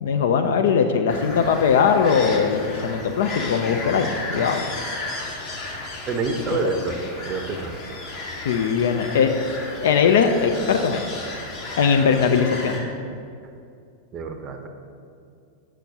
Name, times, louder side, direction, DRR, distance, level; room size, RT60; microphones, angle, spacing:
voice 1, 0.0-4.6 6.6-6.7 8.4-9.5 9.8-11.1 11.8-12.8, left 6 dB, 60° left, 7 dB, 0.3 m, -20 dB
sound 1, 1.1-12.8, left 2 dB, 40° left, 1.1 m, -34 dB
voice 2, 6.1-7.0 7.2-7.8 14.1-14.7, right 4 dB, 25° right, 6 dB, 0.6 m, -27 dB
8.2 x 6.0 x 2.7 m, 2.4 s
figure-of-eight pair, 90°, 0 cm